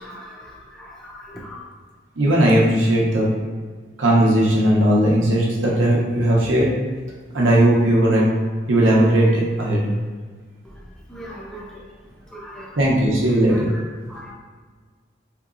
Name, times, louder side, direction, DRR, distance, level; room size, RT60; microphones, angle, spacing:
voice 1, 0.0-1.7 10.6-11.9 12.2-13.1 13.5-13.8 14.1-14.3, equal, 5° left, -3 dB, 0.4 m, -40 dB
voice 2, 2.2-3.3 4.0-6.7 7.3-8.3 8.7-9.8 12.8-13.7, right 1 dB, 90° right, -4 dB, 0.7 m, -17 dB
3.8 x 2.8 x 2.4 m, 1.5 s
head